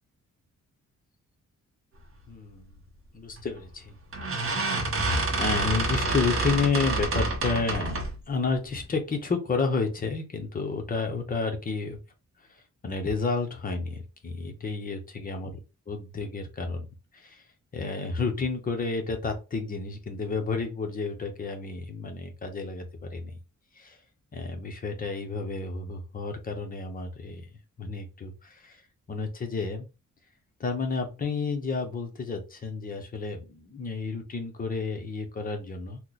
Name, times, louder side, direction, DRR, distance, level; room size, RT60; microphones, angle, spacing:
voice 1, 2.3-2.7 3.1-4.0 4.2-4.6 5.4-12.0 12.5-15.6 15.9-16.9 17.1-17.4 17.7-23.3 23.7-24.0 24.3-27.4 27.8-28.8 29.1-29.9 30.6-36.0, left 4 dB, 30° left, 4 dB, 0.7 m, -31 dB
sound 1, 3.4-3.6 4.1-8.2, right 2 dB, 45° right, 0.7 m, -28 dB
3.0 x 2.0 x 3.8 m, 0.28 s
wide cardioid pair, 180°, 30 cm